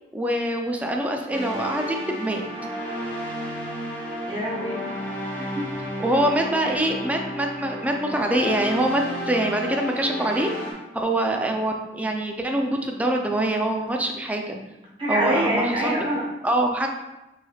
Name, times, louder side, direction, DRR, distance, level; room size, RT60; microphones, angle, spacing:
voice 1, 0.1-2.4 6.0-10.5 10.9-14.5 15.1-15.9 16.4-16.9, right 1 dB, 10° right, 2 dB, 0.4 m, -24 dB
sound 1, 1.3-10.7, equal, 10° left, 0.8 m, -32 dB
voice 2, 4.3-4.8 5.3-5.7 15.0-16.3, equal, 30° right, -5 dB, 1.0 m, -25 dB
5.5 x 3.3 x 2.3 m, 0.98 s
head